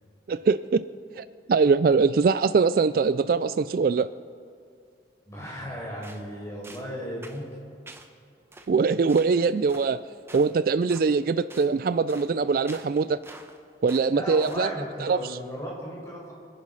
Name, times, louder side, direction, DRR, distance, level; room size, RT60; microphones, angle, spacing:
voice 1, 0.3-0.8 1.2-4.1 8.7-10.0 10.3-13.2 13.8-14.7 15.0-15.2, right 4 dB, 50° right, 15 dB, 0.3 m, -22 dB
voice 2, 5.3-7.5 14.1-16.3, equal, 15° left, -4 dB, 5.0 m, -35 dB
sound 1, 6.0-6.3 6.6-6.9 7.2-7.4 7.9-8.1 8.5-8.7 9.1-9.3 9.7-9.9 10.3-10.5 10.9-11.1 11.5-11.7 12.1-12.3 12.7-13.6 13.9-14.1 14.4-14.7, right 2 dB, 15° right, 0.9 m, -47 dB
25.0 x 9.8 x 5.5 m, 2.4 s
head